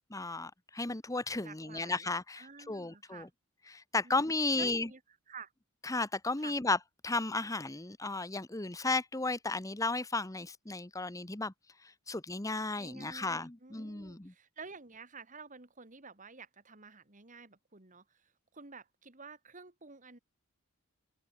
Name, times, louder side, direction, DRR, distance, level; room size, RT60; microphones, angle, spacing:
voice 1, 0.1-3.3 3.7-4.9 5.8-6.8 7.0-11.5 11.8-14.3, left 3 dB, 15° left, 1.0 m, -34 dB
voice 2, 1.4-2.1 2.4-3.3 4.0-5.0 5.3-5.5 6.4-6.5 12.8-20.2, right 4 dB, 40° right, 2.6 m, -51 dB
open air
head